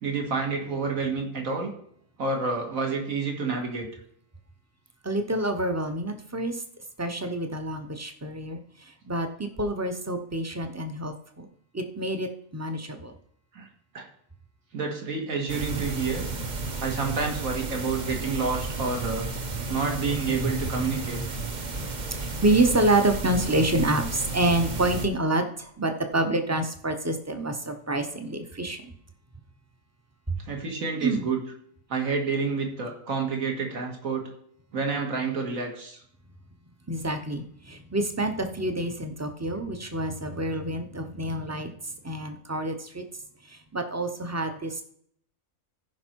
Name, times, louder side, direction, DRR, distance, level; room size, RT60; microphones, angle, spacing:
voice 1, 0.0-1.7 2.2-3.9 13.5-13.7 13.9-14.1 14.7-16.3 16.8-19.3 19.7-21.2 30.5-31.4 31.9-34.3 34.7-36.0, right 4 dB, 70° right, 2 dB, 2.2 m, -29 dB
voice 2, 5.0-6.5 7.0-8.6 9.1-11.5 11.7-13.1 20.5-20.6 20.9-21.0 21.8-21.9 22.2-28.8 31.0-31.3 36.9-41.7 42.0-43.0 43.7-44.7, right 2 dB, 15° right, 6 dB, 0.6 m, -27 dB
sound 1, 15.5-25.1, right 3 dB, 35° right, 0.9 m, -33 dB
15.0 x 5.3 x 4.6 m, 0.65 s
omnidirectional pair, 1.5 m